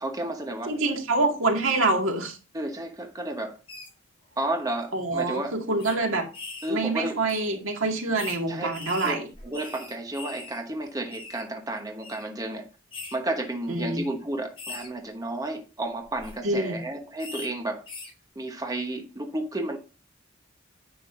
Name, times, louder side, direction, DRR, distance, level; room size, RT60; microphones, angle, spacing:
voice 1, 0.0-0.8 2.5-3.6 4.4-5.6 6.6-7.2 8.5-8.7 9.0-12.7 13.1-17.8 18.3-19.8, right 1 dB, 20° right, 1.1 m, -32 dB
voice 2, 0.7-2.4 4.9-6.3 6.7-9.3 13.7-14.1 16.4-16.8, right 2 dB, 80° right, 2.0 m, -26 dB
sound 1, 3.7-3.9 4.7-4.8 5.1-5.2 5.8-5.9 6.3-6.7 7.3-7.5 8.2-8.4 8.7-10.6 10.8-11.4 12.0-12.2 12.9-13.1 13.7-13.9 14.6-14.9 16.0-16.3 17.2-17.5 17.9-18.1, left 3 dB, 30° left, 4.9 m, -40 dB
9.8 x 6.6 x 2.6 m
head